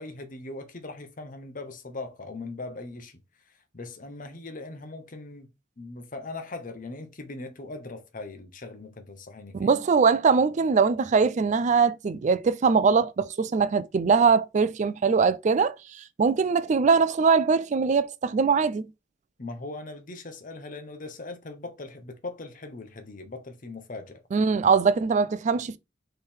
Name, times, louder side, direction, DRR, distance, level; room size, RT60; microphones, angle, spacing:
voice 1, 0.0-3.2 3.5-5.5 5.8-9.7 19.4-24.2, left 2 dB, 45° left, 0.9 m, -40 dB
voice 2, 9.5-18.8 24.3-25.8, right 5 dB, 40° right, 0.3 m, -22 dB
3.6 x 3.2 x 4.3 m
head